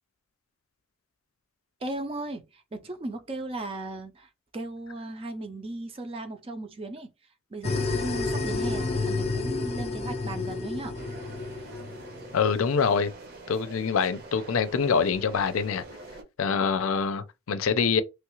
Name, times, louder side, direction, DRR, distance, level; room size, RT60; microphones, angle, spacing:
voice 1, 1.8-7.1 7.5-11.0, right 2 dB, 30° right, 0.4 m, -36 dB
sound 1, 7.6-12.5, left 3 dB, 30° left, 0.5 m, -30 dB
sound 2, 10.9-16.2, right 3 dB, 50° right, 0.8 m, -45 dB
voice 2, 12.3-13.1 13.5-15.8 16.4-18.0, left 5 dB, 85° left, 0.5 m, -25 dB
3.1 x 2.4 x 3.0 m
head